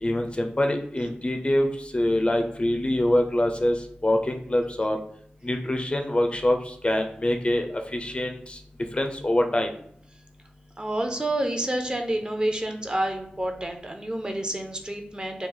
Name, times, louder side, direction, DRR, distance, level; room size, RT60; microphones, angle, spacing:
voice 1, 0.0-5.0 5.4-8.6 8.9-9.7, left 1 dB, 30° left, 4 dB, 0.4 m, -25 dB
voice 2, 10.8-15.5, right 1 dB, 25° right, 4 dB, 0.5 m, -29 dB
3.2 x 2.3 x 3.7 m, 0.66 s
wide cardioid pair, 85°, 4 cm